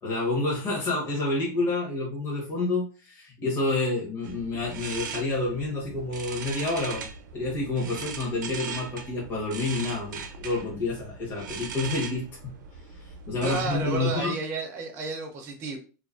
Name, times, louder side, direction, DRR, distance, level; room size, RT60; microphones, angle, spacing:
voice 1, 0.0-7.0 7.3-12.5 12.9-14.4, left 2 dB, 20° left, -5 dB, 0.8 m, -29 dB
sound 1, 4.2-14.0, right 6 dB, 85° right, 0.5 m, -39 dB
voice 2, 13.4-15.8, right 3 dB, 25° right, 2 dB, 0.5 m, -31 dB
2.6 x 2.4 x 2.4 m, 0.35 s
supercardioid pair, 160°, 10 cm